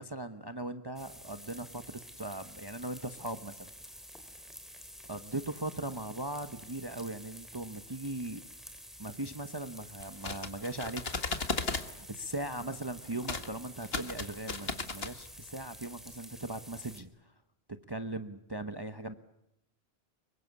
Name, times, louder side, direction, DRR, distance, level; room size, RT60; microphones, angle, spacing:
voice 1, 0.0-3.7 5.1-8.4 9.0-11.5 12.0-17.3 17.9-19.1, right 2 dB, 25° right, 9 dB, 1.1 m, -39 dB
sound 1, 1.0-17.0, equal, ahead, 3.1 m, -50 dB
sound 2, 10.0-11.9 13.2-13.5 13.8-15.1, left 4 dB, 70° left, 2.0 m, -35 dB
26.0 x 23.5 x 8.3 m, 0.81 s
omnidirectional pair, 1.1 m